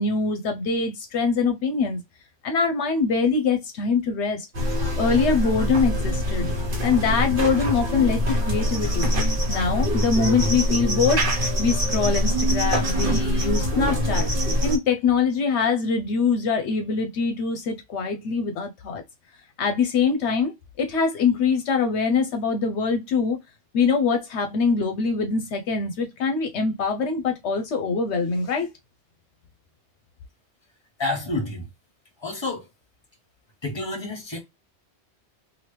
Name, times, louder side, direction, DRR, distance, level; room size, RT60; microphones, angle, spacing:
voice 1, 0.0-2.0 2.4-4.5 5.0-6.5 6.8-9.1 9.5-11.2 11.6-14.3 14.6-19.0 19.6-23.4 23.7-28.7, left 5 dB, 75° left, 0.8 m, -23 dB
sound 1, 4.5-14.8, equal, 50° right, 1.3 m, -24 dB
voice 2, 31.0-31.7 32.2-32.7 33.6-34.4, left 2 dB, 25° left, 1.1 m, -29 dB
2.9 x 2.6 x 3.2 m
omnidirectional pair, 1.2 m